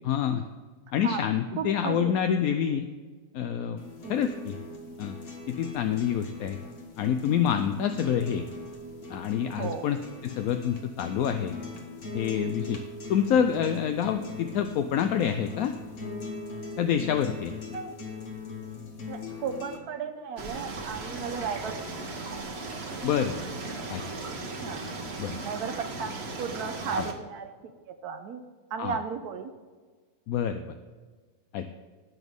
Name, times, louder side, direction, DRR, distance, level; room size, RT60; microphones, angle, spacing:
voice 1, 0.0-0.4 0.9-2.9 3.3-3.8 4.1-4.6 5.0-5.2 5.5-6.6 7.0-8.5 9.1-11.5 12.1-12.8 13.1-15.7 16.8-17.5 23.0-23.3 23.9-24.0 25.2-25.3 27.0-27.1 28.8-29.0 30.3-30.6 31.5-31.7, left 8 dB, 75° left, 7 dB, 1.0 m, -27 dB
voice 2, 1.6-2.2 4.0-4.2 9.6-9.9 17.7-17.9 19.1-21.8 24.6-24.8 25.4-26.1 26.4-27.5 28.0-28.4 28.7-29.5, right 6 dB, 80° right, 6 dB, 1.2 m, -34 dB
sound 1, 3.8-19.8, left 3 dB, 50° left, 1.7 m, -40 dB
sound 2, 20.4-27.1, right 3 dB, 45° right, 1.3 m, -37 dB
sound 3, 21.2-26.3, right 1 dB, 25° right, 1.6 m, -51 dB
18.0 x 6.1 x 3.6 m, 1.5 s
omnidirectional pair, 1.6 m